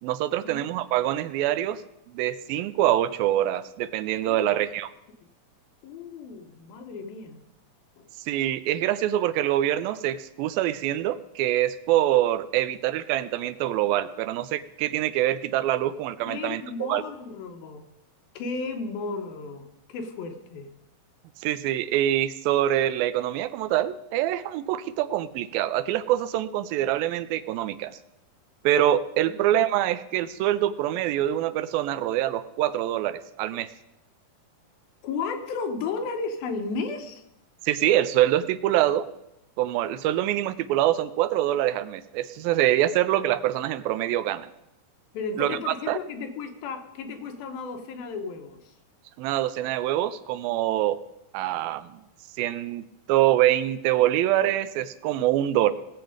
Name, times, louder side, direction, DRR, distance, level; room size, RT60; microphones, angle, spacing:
voice 1, 0.0-1.8 2.1-4.9 8.3-17.0 21.4-27.9 28.6-33.7 37.6-39.1 39.6-44.5 45.4-46.0 49.2-51.0 51.3-51.9 52.4-55.7, right 13 dB, 85° right, 14 dB, 2.4 m, -25 dB
voice 2, 4.3-4.7 5.8-7.4 8.0-8.1 16.3-17.9 18.3-19.6 19.9-20.7 29.3-29.4 35.0-37.2 45.1-48.6, left 4 dB, 85° left, 5 dB, 3.0 m, -34 dB
19.5 x 7.8 x 5.1 m, 0.86 s
omnidirectional pair, 4.1 m